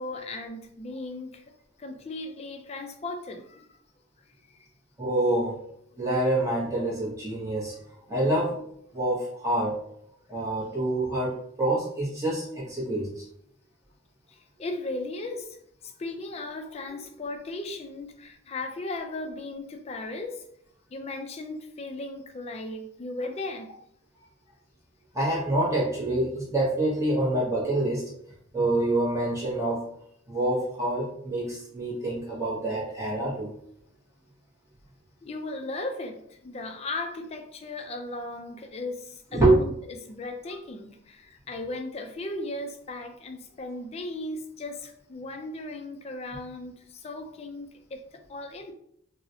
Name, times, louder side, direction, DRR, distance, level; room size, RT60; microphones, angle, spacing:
voice 1, 0.0-1.4 1.8-3.8 4.5-4.7 14.3-15.6 15.8-20.4 20.9-23.7 35.2-48.0 48.3-48.7, left 2 dB, 30° left, 5 dB, 0.3 m, -36 dB
voice 2, 5.0-5.5 6.0-7.8 8.1-8.6 8.9-9.8 10.3-13.2 25.1-28.1 28.5-29.8 30.3-33.5 39.3-39.6, right 1 dB, 15° right, -6 dB, 0.8 m, -26 dB
3.8 x 2.0 x 2.7 m, 0.71 s
head